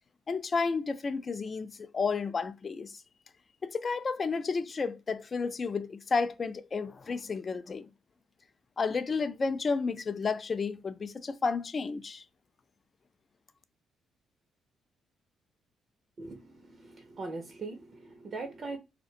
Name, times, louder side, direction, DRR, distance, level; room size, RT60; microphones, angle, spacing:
voice 1, 0.3-2.9 3.6-7.8 8.8-12.2, left 4 dB, 35° left, 0.3 m, -31 dB
voice 2, 16.2-18.8, right 3 dB, 45° right, 0.5 m, -41 dB
2.4 x 2.1 x 2.6 m
cardioid pair, 90°, 0 cm